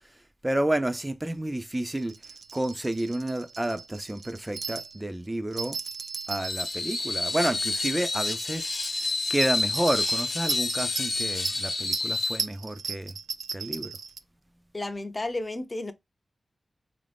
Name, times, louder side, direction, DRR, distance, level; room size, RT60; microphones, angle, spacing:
voice 1, 0.4-2.1 2.5-5.8 6.3-8.7 9.3-13.1 13.5-13.9, right 1 dB, 15° right, 0.4 m, -30 dB
sound 1, 1.8-5.0 5.5-6.8 7.1-8.0 8.3-8.4 8.7-14.2, right 5 dB, 85° right, 0.3 m, -37 dB
Screech, 6.4-12.4, left 3 dB, 60° left, 0.8 m, -29 dB
voice 2, 14.7-15.9, left 2 dB, 30° left, 0.6 m, -32 dB
3.8 x 2.6 x 3.3 m
wide cardioid pair, 75°, 0 cm